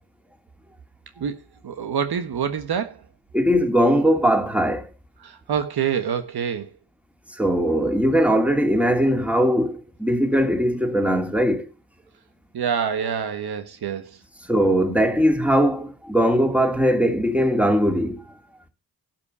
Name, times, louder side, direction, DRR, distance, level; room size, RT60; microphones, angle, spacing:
voice 1, 1.6-2.9 5.2-6.7 12.5-14.1, right 7 dB, 75° right, 1.4 m, -26 dB
voice 2, 3.3-4.9 7.3-11.6 14.5-18.2, equal, 5° right, 2.7 m, -20 dB
12.0 x 6.0 x 6.8 m
cardioid pair, 50°, 38 cm